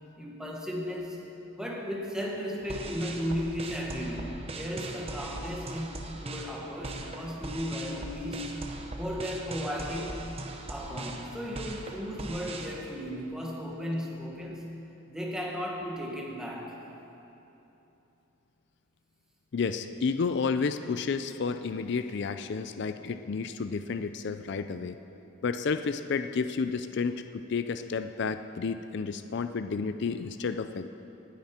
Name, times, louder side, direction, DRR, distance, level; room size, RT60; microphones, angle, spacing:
voice 1, 0.2-1.2 1.6-8.7 8.9-10.4 10.7-14.8 15.1-16.8, equal, 5° right, -2 dB, 1.4 m, -35 dB
sound 1, 2.6-12.7, right 2 dB, 30° right, 0.8 m, -40 dB
voice 2, 19.5-24.9 25.4-30.9, left 5 dB, 55° left, 9 dB, 0.4 m, -31 dB
18.5 x 9.4 x 4.4 m, 3.0 s
head